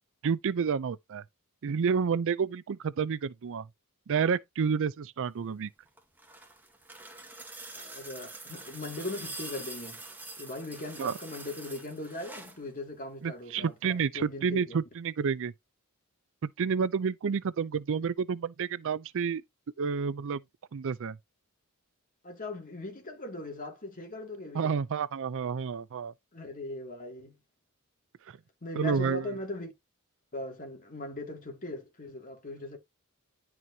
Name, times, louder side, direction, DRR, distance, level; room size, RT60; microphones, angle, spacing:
voice 1, 0.2-1.2 1.6-3.7 4.1-5.7 11.0-11.1 13.2-15.5 16.4-19.4 19.8-20.4 20.7-21.2 24.5-26.1 28.3-28.4 28.8-29.3, right 6 dB, 60° right, 0.4 m, -30 dB
sound 1, 5.9-12.6 13.9-14.0, right 2 dB, 10° right, 1.7 m, -45 dB
voice 2, 7.7-10.0 10.4-14.8 22.2-24.8 26.3-27.4 28.6-29.7 30.3-32.8, left 2 dB, 40° left, 2.4 m, -39 dB
11.0 x 4.5 x 2.8 m
head